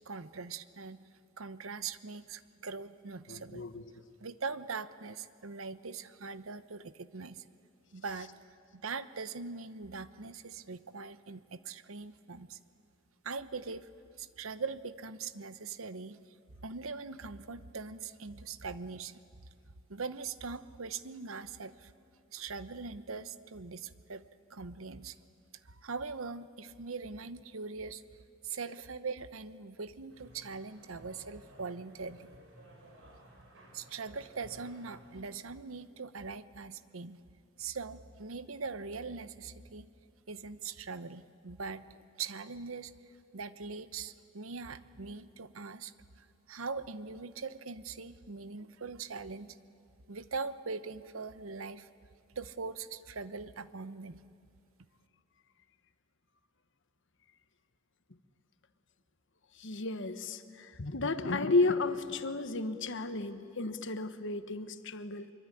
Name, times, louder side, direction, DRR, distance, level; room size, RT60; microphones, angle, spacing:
voice 1, 0.1-1.0 1.4-3.7 4.2-7.4 7.9-8.3 8.7-12.6 13.2-13.9 14.2-16.2 16.6-19.2 19.9-21.9 22.3-24.2 24.5-25.2 25.6-28.0 28.4-32.3 33.7-37.2 37.6-39.9 40.3-42.9 43.3-45.9 46.5-49.6 50.1-51.9 52.3-54.2, right 4 dB, 90° right, 13 dB, 1.0 m, -41 dB
voice 2, 3.3-3.8 59.6-65.3, left 3 dB, 65° left, 10 dB, 1.3 m, -33 dB
sound 1, 30.1-35.2, right 1 dB, 70° right, 5.9 m, -56 dB
23.5 x 23.5 x 10.0 m, 2.5 s
head